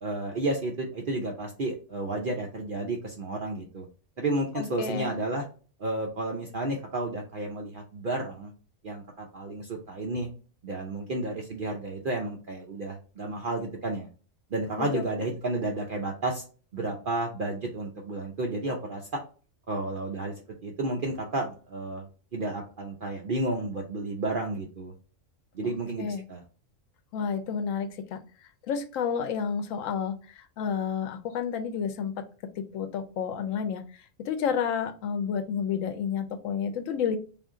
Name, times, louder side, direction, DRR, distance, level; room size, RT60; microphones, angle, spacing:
voice 1, 0.0-3.9 4.2-5.4 5.8-8.5 8.8-10.3 10.6-14.1 14.5-16.4 16.7-19.2 19.7-20.3 20.6-24.9 25.5-26.4, right 2 dB, 50° right, 1 dB, 0.7 m, -32 dB
voice 2, 4.5-5.1 14.8-15.0 26.0-26.2 27.1-28.2 28.7-32.2 32.6-37.2, left 7 dB, 85° left, 9 dB, 1.0 m, -30 dB
3.6 x 2.6 x 3.6 m, 0.37 s
omnidirectional pair, 1.3 m